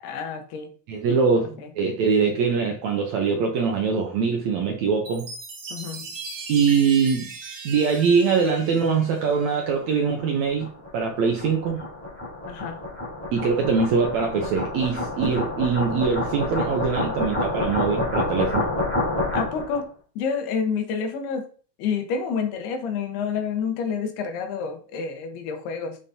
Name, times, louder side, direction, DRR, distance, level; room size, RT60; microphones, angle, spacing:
voice 1, 0.0-0.7 1.6-1.7 5.7-6.1 12.5-12.8 19.3-19.9 20.2-21.5 21.8-26.0, left 6 dB, 90° left, 5 dB, 3.2 m, -28 dB
voice 2, 0.9-5.3 6.5-7.3 7.6-10.7 10.9-11.8 13.3-18.7, right 5 dB, 75° right, 2 dB, 1.6 m, -23 dB
Chime, 5.0-9.7, right 4 dB, 45° right, 2.1 m, -39 dB
sound 1, 9.8-19.8, left 2 dB, 5° left, 2.7 m, -28 dB
7.4 x 6.9 x 2.7 m, 0.41 s
omnidirectional pair, 4.4 m